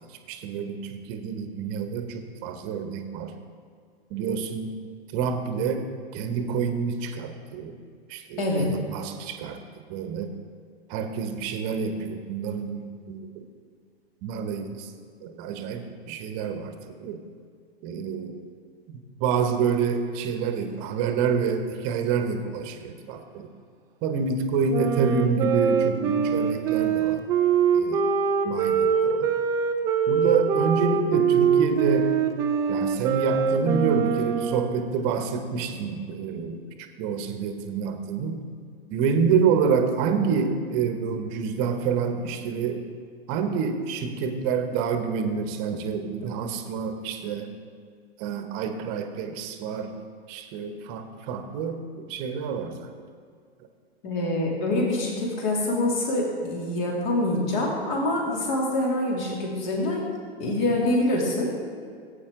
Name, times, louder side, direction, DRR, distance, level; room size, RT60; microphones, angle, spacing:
voice 1, 0.3-3.4 4.1-4.7 5.1-5.9 6.1-7.8 8.1-9.6 9.9-10.3 10.9-13.3 14.2-14.9 15.2-17.2 17.8-18.4 19.2-23.5 24.0-27.2 27.7-28.0 28.4-29.3 30.1-32.1 32.7-36.6 37.0-38.4 38.9-42.8 43.3-47.5 48.2-49.9 50.3-52.8, right 6 dB, 35° right, 7 dB, 1.1 m, -27 dB
voice 2, 8.4-8.7 54.0-60.1 60.4-61.5, left 1 dB, 45° left, -2 dB, 2.9 m, -25 dB
Wind instrument woodwind instrument, 24.7-34.7, right 7 dB, 10° right, 0.3 m, -23 dB
16.5 x 8.7 x 3.8 m, 2.1 s
figure-of-eight pair, 110°, 32 cm